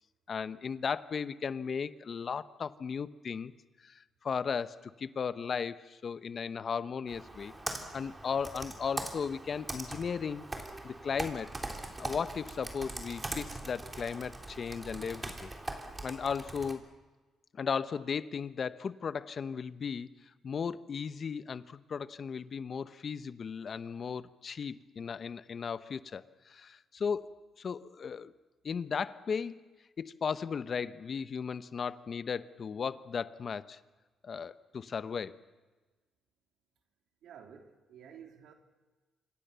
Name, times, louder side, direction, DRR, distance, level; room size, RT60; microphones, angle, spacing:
voice 1, 0.3-3.5 3.8-7.5 7.9-10.5 10.8-11.5 12.0-15.5 16.0-16.8 17.5-20.1 20.4-28.3 28.6-29.6 30.0-33.8 34.2-35.4, left 6 dB, 45° left, 13 dB, 1.0 m, -36 dB
Computer keyboard, 7.1-16.7, right 2 dB, 20° right, 3.7 m, -41 dB
voice 2, 37.2-38.5, right 8 dB, 75° right, 4 dB, 3.6 m, -52 dB
27.0 x 25.5 x 7.0 m, 1.3 s
cardioid pair, 90°, 0 cm